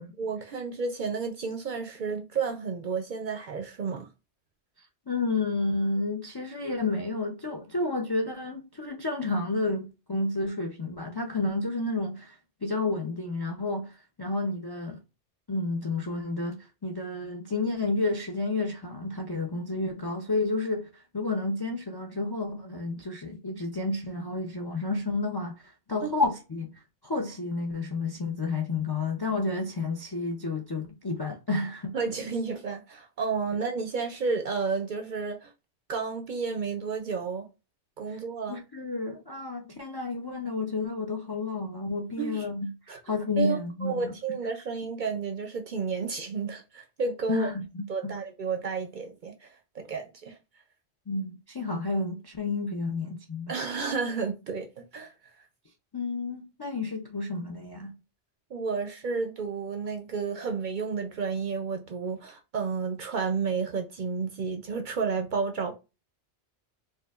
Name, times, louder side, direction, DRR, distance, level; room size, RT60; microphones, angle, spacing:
voice 1, 0.0-4.1 26.0-26.1 31.9-35.5 35.9-37.5 38.0-38.6 42.2-42.5 42.9-43.0 43.4-47.5 47.9-49.5 49.7-50.4 53.5-55.1 58.5-65.8, right 5 dB, 55° right, 0.6 m, -31 dB
voice 2, 4.8-15.0 15.5-31.9 38.1-38.2 38.5-42.7 43.0-44.4 47.3-48.1 51.1-53.5 55.9-57.9, left 3 dB, 40° left, 0.3 m, -31 dB
4.5 x 2.4 x 2.3 m
omnidirectional pair, 1.2 m